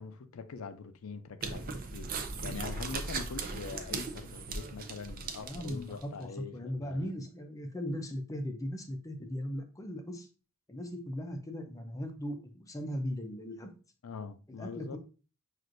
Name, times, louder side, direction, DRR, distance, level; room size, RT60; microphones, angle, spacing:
voice 1, 0.0-7.1 14.0-15.0, left 5 dB, 85° left, 0.5 m, -43 dB
sound 1, 1.4-6.0, right 4 dB, 45° right, 0.5 m, -38 dB
voice 2, 5.4-10.3 10.7-13.7 14.5-15.0, equal, 15° left, 0.5 m, -38 dB
6.0 x 2.5 x 2.5 m
head